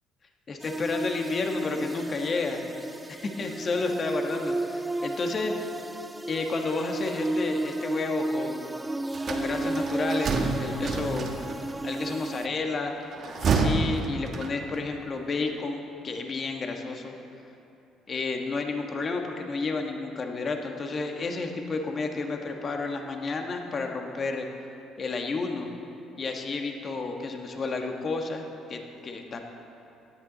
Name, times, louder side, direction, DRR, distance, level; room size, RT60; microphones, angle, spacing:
voice 1, 0.5-2.6 3.1-5.5 6.3-8.7 9.3-11.3 11.8-12.9 13.4-17.1 18.1-24.5 25.0-25.7 26.2-29.4, left 3 dB, 40° left, 3 dB, 1.3 m, -31 dB
sound 1, 0.6-12.5, right 2 dB, 15° right, 0.4 m, -33 dB
sound 2, 9.1-11.7 13.0-14.8, right 4 dB, 50° right, 1.3 m, -28 dB
17.0 x 11.0 x 4.0 m, 2.8 s
cardioid pair, 95°, 0 cm